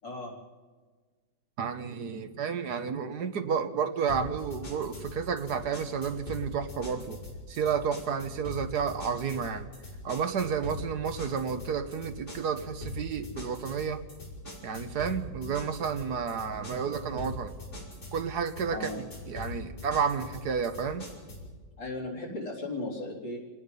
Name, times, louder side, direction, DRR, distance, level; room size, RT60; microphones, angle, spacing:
voice 1, 0.0-0.4 18.7-19.0 21.8-23.4, left 2 dB, 85° left, -4 dB, 4.6 m, -36 dB
voice 2, 1.6-7.2 7.5-9.7 10.0-14.0 14.6-17.5 18.1-18.9 19.3-21.1, right 6 dB, 65° right, 9 dB, 1.6 m, -31 dB
sound 1, 4.1-21.5, left 1 dB, 40° left, 5.7 m, -42 dB
27.5 x 19.0 x 5.4 m, 1.4 s
omnidirectional pair, 1.9 m